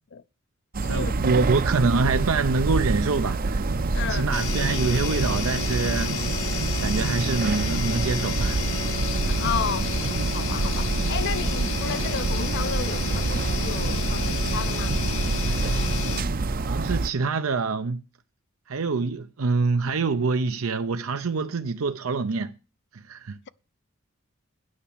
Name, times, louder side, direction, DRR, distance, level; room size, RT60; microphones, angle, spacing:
sound 1, 0.7-17.1, right 3 dB, 45° right, 0.6 m, -26 dB
voice 1, 0.8-3.6 4.1-6.1 6.8-8.6 16.7-18.0 18.7-22.5 22.9-23.4, right 4 dB, 85° right, 0.6 m, -25 dB
voice 2, 3.9-4.3 9.3-9.9 10.3-13.3 13.6-15.0, left 7 dB, 55° left, 0.5 m, -32 dB
sound 2, 4.3-16.2, left 5 dB, 70° left, 1.1 m, -31 dB
9.6 x 5.8 x 8.4 m
head